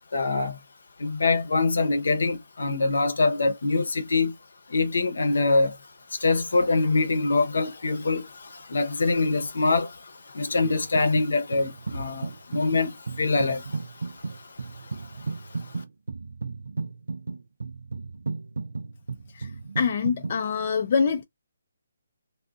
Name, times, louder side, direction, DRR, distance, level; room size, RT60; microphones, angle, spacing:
voice 1, 0.1-0.6 1.0-4.3 4.7-5.8 6.1-15.8, left 3 dB, 75° left, 0.9 m, -25 dB
sound 1, 10.6-11.3 11.5-20.4, right 4 dB, 85° right, 0.3 m, -34 dB
voice 2, 19.8-21.2, left 6 dB, 45° left, 0.5 m, -24 dB
2.5 x 2.3 x 3.6 m
hypercardioid pair, 160°, 0 cm